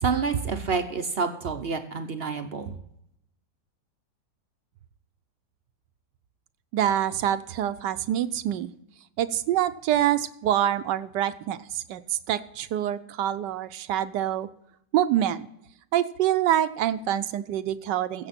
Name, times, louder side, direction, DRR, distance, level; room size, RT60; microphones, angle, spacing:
voice 1, 0.0-2.8, right 5 dB, 55° right, 7 dB, 0.7 m, -28 dB
voice 2, 6.7-8.7 9.2-14.5 14.9-15.4 15.9-18.3, right 11 dB, 75° right, 12 dB, 1.2 m, -26 dB
15.5 x 7.4 x 4.2 m, 0.78 s
omnidirectional pair, 2.0 m